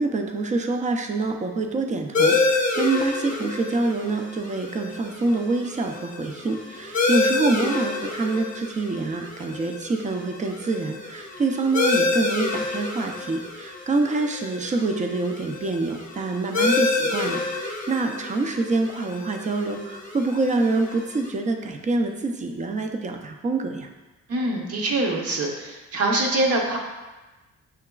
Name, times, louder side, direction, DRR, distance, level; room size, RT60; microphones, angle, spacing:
voice 1, 0.0-23.9, right 3 dB, 25° right, 5 dB, 0.4 m, -26 dB
sound 1, 2.1-21.3, left 3 dB, 25° left, 0.7 m, -28 dB
voice 2, 24.3-26.8, right 2 dB, 55° right, 0 dB, 0.9 m, -24 dB
5.7 x 2.9 x 2.3 m, 1.1 s
cardioid pair, 90°, 30 cm